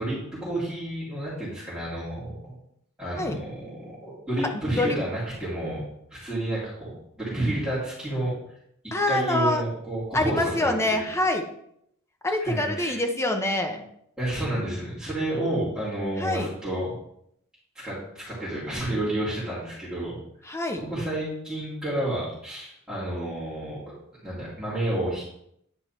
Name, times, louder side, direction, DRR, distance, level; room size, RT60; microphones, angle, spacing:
voice 1, 0.0-2.5 3.0-5.8 6.1-6.9 7.2-8.3 9.1-11.1 12.4-13.0 14.2-17.0 17.7-20.2 20.8-25.2, right 1 dB, 5° right, -13 dB, 3.0 m, -30 dB
voice 2, 8.9-9.6 10.1-11.4 12.2-13.8 16.2-16.5 20.5-20.8, left 1 dB, 15° left, 4 dB, 0.9 m, -25 dB
10.0 x 4.6 x 4.4 m, 0.73 s
head